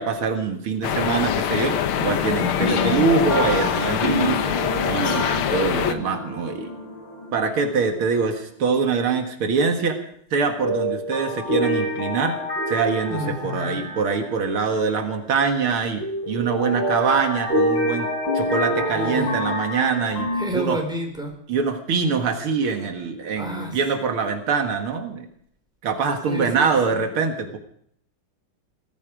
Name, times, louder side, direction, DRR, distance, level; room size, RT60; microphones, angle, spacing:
voice 1, 0.0-4.4 4.9-6.7 7.3-10.0 10.3-12.4 12.7-18.1 18.3-20.8 21.5-25.3 25.8-27.6, right 5 dB, 80° right, 5 dB, 2.6 m, -24 dB
sound 1, 0.8-5.9, left 9 dB, 80° left, 1.9 m, -24 dB
sound 2, 2.6-7.9 8.2-8.3 10.6-14.7 16.0-20.5, equal, 60° left, 4.8 m, -27 dB
voice 2, 13.1-13.9 18.9-19.4 20.3-21.3 23.3-23.8 26.2-27.1, equal, ahead, 1 dB, 5.0 m, -30 dB
19.0 x 14.5 x 5.1 m, 0.66 s
omnidirectional pair, 2.3 m